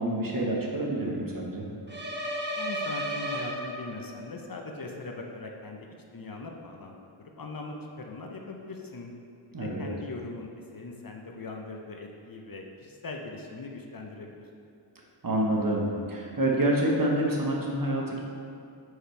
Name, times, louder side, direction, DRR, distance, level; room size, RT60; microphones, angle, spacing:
voice 1, 0.0-1.7 9.5-9.9 15.2-18.2, right 1 dB, 45° right, -2 dB, 1.0 m, -27 dB
sound 1, 1.9-4.2, equal, 25° right, 0.8 m, -33 dB
voice 2, 2.6-5.8 6.1-9.1 9.6-14.5, left 3 dB, 45° left, 2 dB, 0.6 m, -40 dB
5.1 x 4.8 x 4.4 m, 2.5 s
wide cardioid pair, 70°, 48 cm